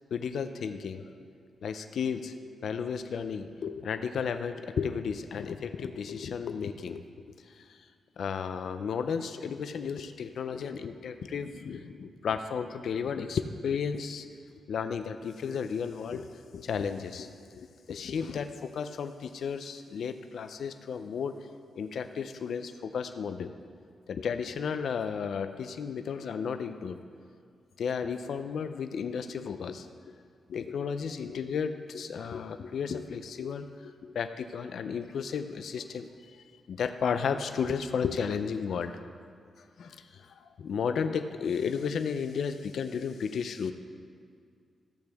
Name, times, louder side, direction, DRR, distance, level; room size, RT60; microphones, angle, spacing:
voice 1, 0.1-1.1 1.6-2.3 2.6-7.0 7.6-7.8 8.2-14.3 14.7-16.3 16.5-21.4 21.8-23.5 24.1-27.0 27.8-29.9 30.5-36.1 36.7-39.0 39.8-43.7, left 6 dB, 70° left, 8 dB, 0.4 m, -33 dB
14.0 x 8.1 x 3.5 m, 2.2 s
wide cardioid pair, 145°, 0 cm